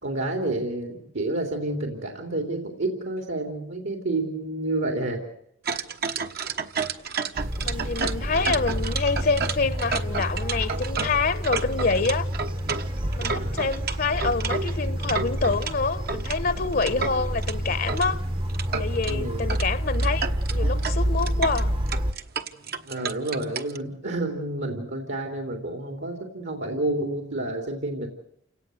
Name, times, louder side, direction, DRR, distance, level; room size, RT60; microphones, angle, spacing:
voice 1, 0.0-5.2 7.6-7.7 13.2-13.6 19.0-19.5 22.9-28.1, right 2 dB, 75° right, 3.5 m, -29 dB
sound 1, 5.7-15.7 16.1-18.1 18.5-19.1 19.5-19.7 19.9-23.8, right 5 dB, 55° right, 1.3 m, -31 dB
sound 2, 7.4-22.1, equal, 25° right, 1.0 m, -29 dB
voice 2, 7.6-12.3 13.1-18.2 18.8-21.7, left 4 dB, 50° left, 1.0 m, -26 dB
29.0 x 18.0 x 7.9 m
head